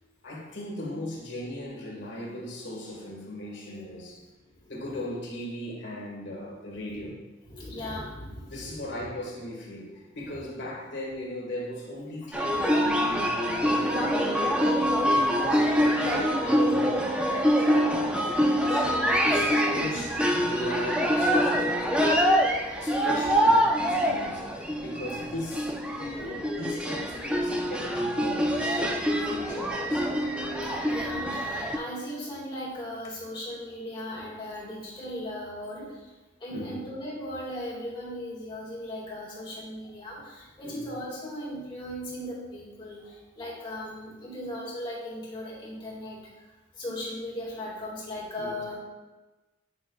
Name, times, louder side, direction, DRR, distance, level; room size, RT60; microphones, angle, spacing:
voice 1, 0.2-4.2 4.7-7.2 8.5-22.3 22.8-30.1 30.7-31.0 36.5-36.8 40.6-40.8 48.4-48.6, left 1 dB, 65° left, -3 dB, 1.8 m, -38 dB
voice 2, 7.4-9.1 23.1-23.2 30.9-36.1 36.4-48.8, left 1 dB, 25° left, -6 dB, 2.1 m, -38 dB
sound 1, 12.3-31.8, equal, 5° right, 0.5 m, -25 dB
8.8 x 5.5 x 2.3 m, 1.2 s
head